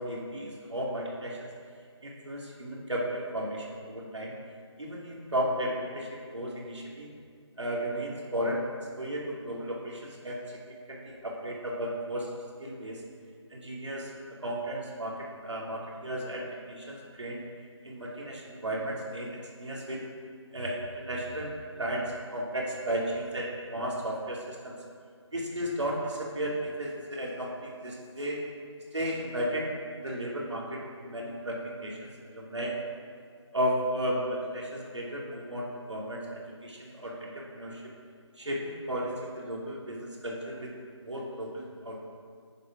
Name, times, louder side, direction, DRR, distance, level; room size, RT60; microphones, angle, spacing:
voice 1, 0.0-1.4 2.0-4.3 4.8-7.1 7.6-8.6 9.0-10.4 10.9-12.3 12.6-13.0 13.5-14.1 14.4-17.4 17.8-20.1 20.5-21.5 21.8-24.8 25.3-28.4 28.9-32.7 33.5-37.8 38.4-40.7 41.0-42.0, equal, 75° right, -3 dB, 3.1 m, -34 dB
11.5 x 9.1 x 6.1 m, 2.1 s
figure-of-eight pair, 180°, 15 cm